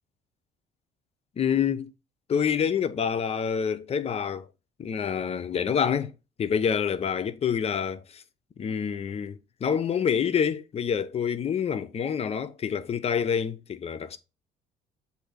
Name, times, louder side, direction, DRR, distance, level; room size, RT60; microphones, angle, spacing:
voice 1, 1.4-1.9 2.3-4.5 4.8-6.1 6.4-8.2 8.6-14.2, left 7 dB, 35° left, 0.6 m, -27 dB
7.7 x 2.7 x 5.0 m
cardioid pair, 110°, 17 cm